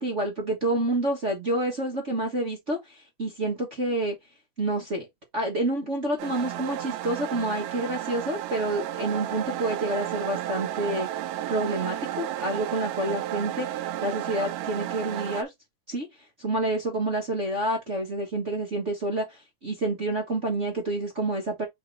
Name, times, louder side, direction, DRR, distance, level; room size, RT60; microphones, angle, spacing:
voice 1, 0.0-4.1 4.6-5.1 5.3-11.1 11.5-15.5 15.9-16.1 16.4-21.7, right 2 dB, 55° right, 0.8 m, -28 dB
sound 1, 6.2-15.4, right 12 dB, 85° right, 2.3 m, -33 dB
5.1 x 3.6 x 5.2 m
omnidirectional pair, 3.7 m